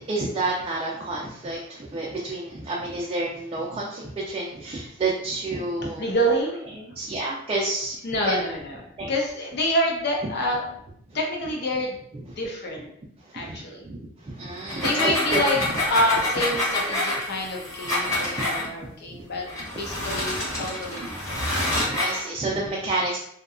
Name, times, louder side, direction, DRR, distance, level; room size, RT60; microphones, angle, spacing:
voice 1, 0.0-6.0 6.8-8.0 8.2-8.3 9.0-9.1 13.2-13.6 13.8-15.4 18.1-18.2 18.6-19.2 21.7-23.2, right 2 dB, 30° right, -4 dB, 0.4 m, -30 dB
voice 2, 5.8-6.6 8.0-8.8 9.1-10.6 10.9-12.0 12.4-12.9 13.3-13.8 14.6-19.5 19.7-21.4, equal, 55° left, -1 dB, 0.7 m, -27 dB
sound 1, 14.6-18.7 19.5-22.2, left 1 dB, 15° left, 0.9 m, -27 dB
sound 2, 15.0-21.4, left 2 dB, 85° left, 1.2 m, -45 dB
2.7 x 2.2 x 2.4 m, 0.70 s
head